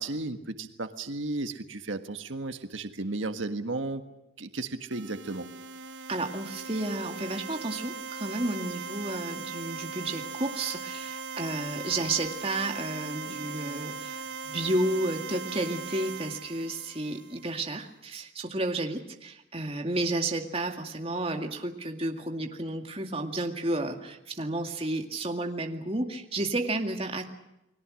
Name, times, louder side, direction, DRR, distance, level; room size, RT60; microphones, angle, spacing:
voice 1, 0.0-4.0 4.4-5.5, right 2 dB, 90° right, 7 dB, 1.6 m, -34 dB
sound 1, 4.9-17.6, right 5 dB, 75° right, 1.0 m, -39 dB
voice 2, 6.1-27.3, right 2 dB, 30° right, 4 dB, 2.2 m, -32 dB
30.0 x 21.0 x 6.4 m, 0.87 s
head